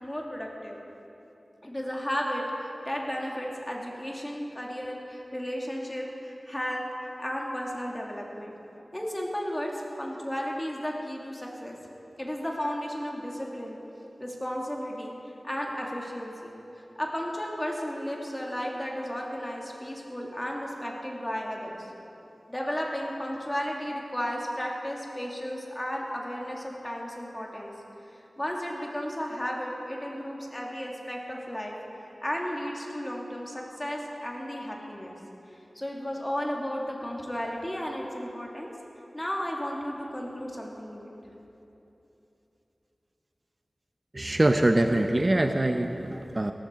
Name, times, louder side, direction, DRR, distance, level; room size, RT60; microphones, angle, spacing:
voice 1, 0.0-0.8 1.6-6.9 7.2-8.5 8.9-11.8 12.2-13.8 14.2-15.1 15.4-16.5 17.0-21.9 22.5-27.7 28.4-31.7 32.2-35.1 35.7-38.7 39.1-41.1, equal, 20° left, -1 dB, 2.6 m, -34 dB
voice 2, 44.1-46.5, right 1 dB, 35° right, 6 dB, 0.6 m, -24 dB
17.5 x 14.5 x 4.7 m, 3.0 s
wide cardioid pair, 55°, 0 cm